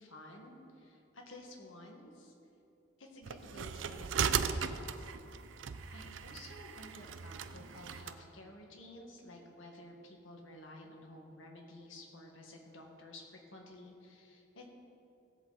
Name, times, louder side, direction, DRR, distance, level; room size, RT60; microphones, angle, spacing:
voice 1, 0.0-2.3 3.0-5.1 5.9-14.7, left 1 dB, 80° left, 1 dB, 1.8 m, -52 dB
sound 1, 3.3-8.2, right 7 dB, 70° right, 0.5 m, -37 dB
17.0 x 7.9 x 4.1 m, 2.7 s
head